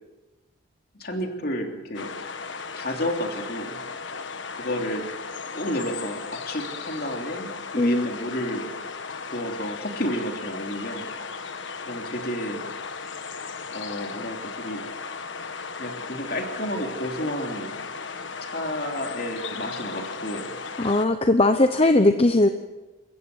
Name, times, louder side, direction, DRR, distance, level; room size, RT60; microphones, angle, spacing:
voice 1, 0.9-2.1 2.7-3.8 4.5-5.0 5.5-8.7 9.3-11.1 11.8-12.6 13.7-14.8 15.8-17.7 18.4-20.5, equal, 50° left, 3 dB, 3.1 m, -31 dB
sound 1, 1.9-21.1, left 5 dB, 65° left, 1.4 m, -36 dB
voice 2, 7.8-8.1 20.8-22.5, left 2 dB, 30° left, 9 dB, 0.7 m, -19 dB
27.5 x 15.0 x 7.9 m, 1.1 s
head